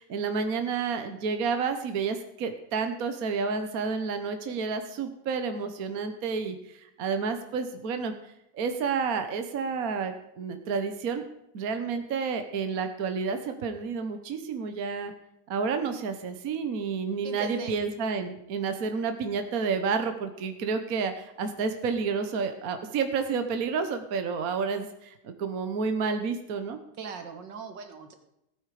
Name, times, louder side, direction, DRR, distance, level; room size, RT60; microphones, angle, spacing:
voice 1, 0.0-8.1 8.5-11.2 11.5-15.1 15.5-26.8, right 5 dB, 55° right, 8 dB, 1.5 m, -30 dB
voice 2, 17.2-17.7 27.0-28.1, right 5 dB, 75° right, 7 dB, 2.2 m, -39 dB
16.5 x 9.2 x 4.9 m, 0.85 s
omnidirectional pair, 2.0 m